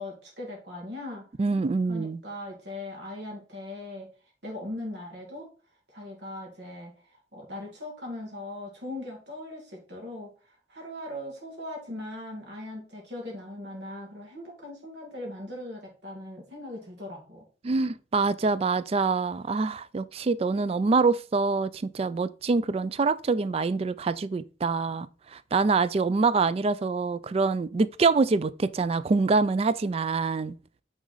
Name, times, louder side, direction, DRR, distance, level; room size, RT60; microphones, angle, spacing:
voice 1, 0.0-1.3 1.9-4.1 4.4-5.5 5.9-17.4, left 1 dB, 65° right, 2.2 m, -39 dB
voice 2, 1.4-2.2 17.6-25.1 25.3-30.6, right 4 dB, 35° right, 0.3 m, -25 dB
9.2 x 3.8 x 4.0 m
head